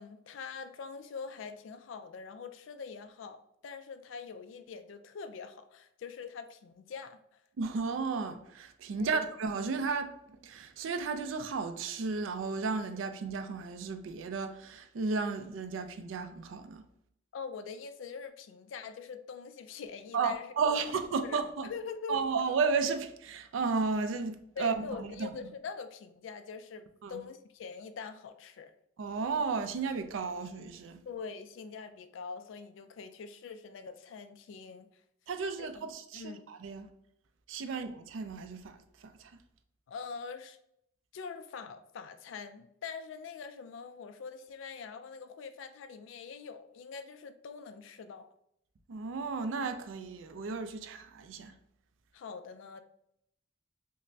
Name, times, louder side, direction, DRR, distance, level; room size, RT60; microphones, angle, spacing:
voice 1, 0.0-7.2 8.9-9.2 17.3-20.5 21.2-21.4 21.6-22.2 24.6-28.7 31.1-34.9 35.6-36.5 39.9-40.6 41.1-48.3 52.1-52.8, left 5 dB, 80° left, 0.3 m, -44 dB
voice 2, 7.6-10.2 10.4-16.9 20.1-21.7 22.1-25.3 27.0-27.2 29.0-31.0 35.3-36.9 37.5-39.3 48.9-51.5, right 4 dB, 85° right, 0.4 m, -33 dB
5.1 x 2.1 x 2.6 m
head